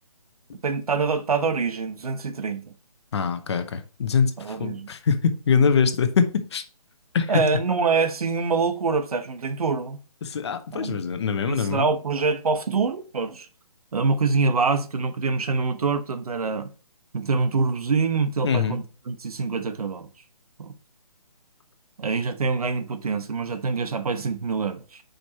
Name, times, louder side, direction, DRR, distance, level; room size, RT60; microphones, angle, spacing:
voice 1, 0.6-2.7 4.4-4.9 7.3-10.0 10.7-11.0 11.5-13.5 13.9-16.7 17.1-20.1 20.6-20.7 22.0-25.0, right 4 dB, 75° right, 0.9 m, -25 dB
voice 2, 3.1-6.6 7.1-7.4 10.2-11.9 18.4-18.8, left 6 dB, 45° left, 0.8 m, -23 dB
5.1 x 4.6 x 4.1 m
hypercardioid pair, 155°, 19 cm